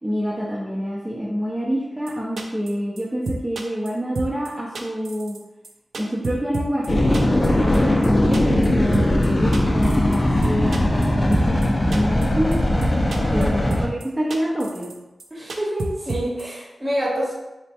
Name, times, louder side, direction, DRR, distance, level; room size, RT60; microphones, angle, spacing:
voice 1, 0.0-5.4 5.9-12.6 13.3-14.9, equal, 15° right, -7 dB, 0.6 m, -27 dB
sound 1, 2.1-2.2 2.4-2.7 3.0-3.1 3.3-3.9 4.2-4.5 4.8-5.4 5.6-6.9 7.1-7.5 7.7-7.8 8.0-8.1 8.3-8.7 8.9-9.3 9.5-10.2 10.4-11.1 11.3-11.7 11.9-12.3 12.5-12.6 12.8-13.5 13.7-14.0 14.3-14.9 15.2-15.3 15.5-16.4, right 2 dB, 80° right, 0.4 m, -29 dB
sound 2, 6.9-13.9, left 1 dB, 35° left, 0.6 m, -19 dB
voice 2, 13.2-13.5 15.3-17.3, equal, 30° right, -3 dB, 1.0 m, -27 dB
3.2 x 2.2 x 4.2 m, 0.99 s
wide cardioid pair, 65°, 0 cm